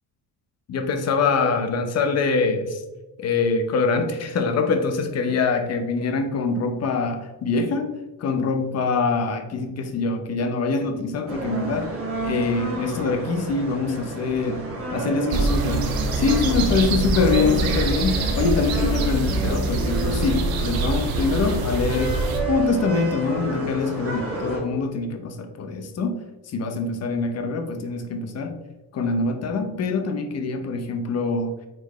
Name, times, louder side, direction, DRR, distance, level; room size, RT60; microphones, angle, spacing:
voice 1, 0.7-2.8 3.2-7.9 8.2-11.9 12.2-14.6 14.9-22.2 22.5-26.1 26.5-28.6 28.9-31.5, left 4 dB, 40° left, 6 dB, 0.8 m, -24 dB
sound 1, 11.3-24.6, right 2 dB, 35° right, 2.2 m, -30 dB
sound 2, 15.3-22.4, right 2 dB, 65° right, 1.0 m, -25 dB
8.1 x 4.4 x 3.1 m, 1.1 s
cardioid pair, 175°, 39 cm